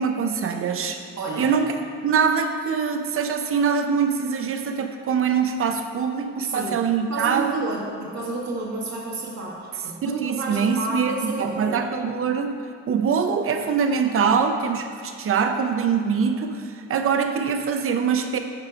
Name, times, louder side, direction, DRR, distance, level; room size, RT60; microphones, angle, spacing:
voice 1, 0.0-1.0 1.4-1.7 2.0-7.6 10.0-12.5 12.9-18.4, right 6 dB, 45° right, 6 dB, 0.6 m, -23 dB
voice 2, 1.2-1.5 6.4-6.7 7.1-11.8, right 3 dB, 65° right, -4 dB, 1.4 m, -30 dB
7.5 x 3.8 x 4.9 m, 2.5 s
cardioid pair, 90°, 30 cm